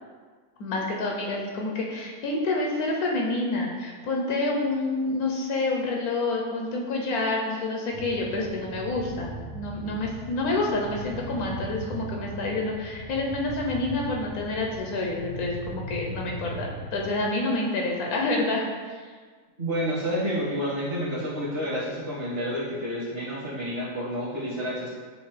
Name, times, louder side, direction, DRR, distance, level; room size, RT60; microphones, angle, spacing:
voice 1, 0.6-19.1, left 2 dB, 80° left, -1 dB, 1.1 m, -28 dB
sound 1, 7.9-17.2, right 1 dB, 85° right, 1.8 m, -39 dB
voice 2, 19.6-24.9, equal, 40° right, -9 dB, 1.7 m, -29 dB
6.5 x 2.6 x 3.1 m, 1.5 s
omnidirectional pair, 1.6 m